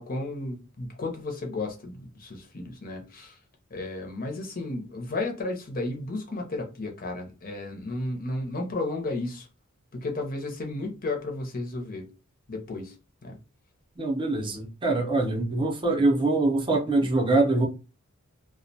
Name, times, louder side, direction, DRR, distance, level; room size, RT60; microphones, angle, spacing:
voice 1, 0.0-3.4 3.7-9.5 9.9-12.1 12.5-12.9 13.2-13.4, left 2 dB, 40° left, 0.6 m, -33 dB
voice 2, 14.0-17.7, right 2 dB, 20° right, 0.6 m, -24 dB
2.2 x 2.1 x 2.6 m
head